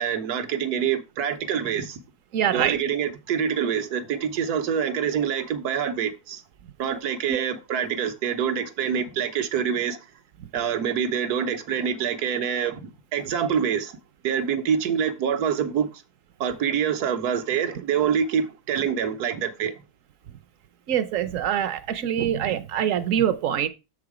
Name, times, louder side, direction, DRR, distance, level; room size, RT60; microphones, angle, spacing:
voice 1, 0.0-2.0 2.5-6.4 6.8-10.0 10.5-13.9 14.2-15.9 16.4-19.7, right 8 dB, 85° right, 1.4 m, -26 dB
voice 2, 2.3-2.8 7.3-7.4 20.9-23.7, right 9 dB, 65° right, 0.9 m, -24 dB
7.1 x 4.9 x 4.8 m
omnidirectional pair, 1.6 m